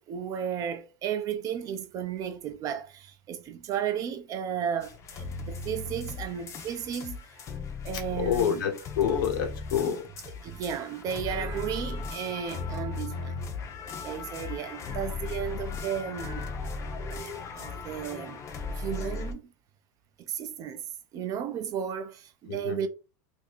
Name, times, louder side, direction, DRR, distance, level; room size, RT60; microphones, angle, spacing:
voice 1, 0.0-7.2 7.8-8.6 10.4-13.4 14.0-16.6 17.5-18.4 18.8-19.5 20.2-20.8 21.1-22.9, right 8 dB, 35° right, 0.5 m, -34 dB
sound 1, 4.8-19.3, left 4 dB, 30° left, 0.6 m, -37 dB
voice 2, 8.1-9.9 22.5-22.8, left 8 dB, 80° left, 1.1 m, -27 dB
2.7 x 2.6 x 4.0 m
supercardioid pair, 150°, 11 cm